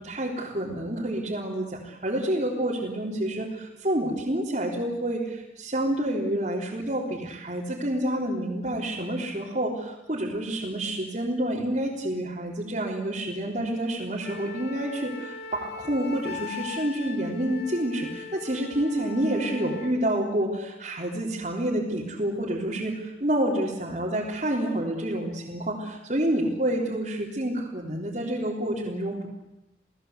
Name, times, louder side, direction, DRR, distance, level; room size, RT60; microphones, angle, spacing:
voice 1, 0.0-29.3, right 1 dB, 40° right, -4 dB, 3.8 m, -28 dB
Wind instrument woodwind instrument, 14.2-20.0, left 5 dB, 65° left, 3.1 m, -39 dB
29.5 x 19.5 x 8.2 m, 0.97 s
head